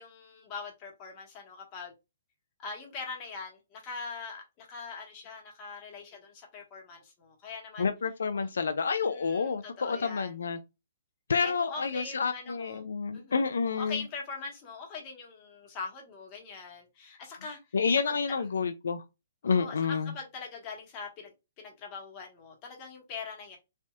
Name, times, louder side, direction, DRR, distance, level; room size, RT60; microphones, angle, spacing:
voice 1, 0.0-1.9 2.6-7.9 8.3-8.5 9.0-10.3 11.4-12.8 13.1-13.5 13.7-17.6 18.1-18.4 19.4-21.3 21.6-23.6, left 4 dB, 30° left, 1.3 m, -42 dB
voice 2, 7.8-10.6 11.3-14.0 17.7-19.0 19.4-20.1, left 5 dB, 80° left, 0.3 m, -29 dB
3.4 x 2.5 x 2.3 m
hypercardioid pair, 140°, 0 cm